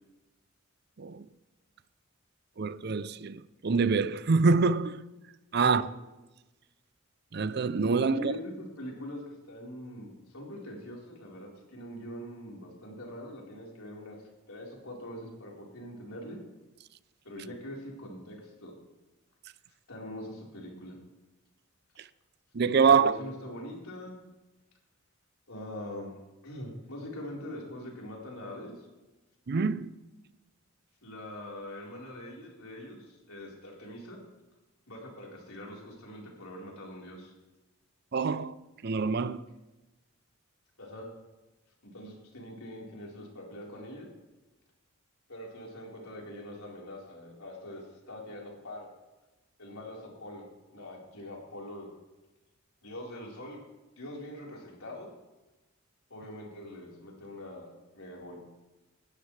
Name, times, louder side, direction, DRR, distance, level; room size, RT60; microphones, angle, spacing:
voice 1, 2.6-5.0 5.5-5.8 7.3-8.3 22.5-23.1 29.5-29.9 38.1-38.5 38.8-39.4, right 5 dB, 50° right, 0.5 m, -25 dB
voice 2, 8.1-14.2 14.5-16.4 17.2-18.7 19.9-21.0 22.8-24.2 25.5-26.1 26.4-28.9 31.0-34.2 34.9-37.3 40.8-41.1 41.8-44.1 45.3-48.9 49.6-50.5 50.7-51.9 52.8-53.6 54.0-55.1 56.1-58.4, left 1 dB, 85° left, 4.3 m, -43 dB
19.0 x 12.0 x 3.3 m
head